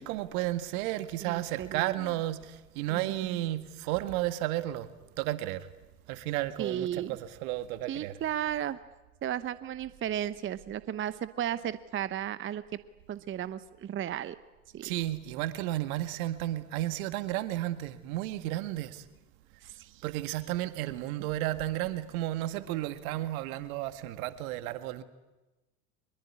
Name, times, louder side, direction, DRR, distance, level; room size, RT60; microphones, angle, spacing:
voice 1, 0.0-4.9 5.2-5.7 6.1-8.2 14.8-19.0 20.0-25.0, right 15 dB, 65° right, 2.1 m, -33 dB
voice 2, 1.2-2.1 2.9-3.5 6.6-7.2 7.9-8.8 9.2-12.6 13.1-14.4 14.7-14.9 19.6-20.0, right 10 dB, 25° right, 0.9 m, -34 dB
24.5 x 22.0 x 9.9 m
hypercardioid pair, 90°, 46 cm